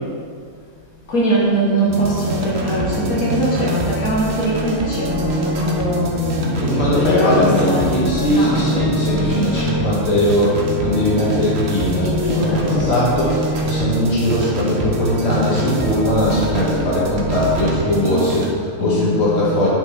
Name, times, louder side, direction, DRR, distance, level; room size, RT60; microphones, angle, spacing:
voice 1, 1.1-9.7 12.0-13.1 18.8-19.5, equal, 80° left, -7 dB, 2.1 m, -22 dB
sound 1, 1.9-18.5, right 1 dB, 50° right, 1.1 m, -24 dB
voice 2, 6.5-19.7, left 1 dB, 50° left, -7 dB, 2.6 m, -20 dB
8.8 x 8.5 x 3.6 m, 2.1 s
omnidirectional pair, 1.5 m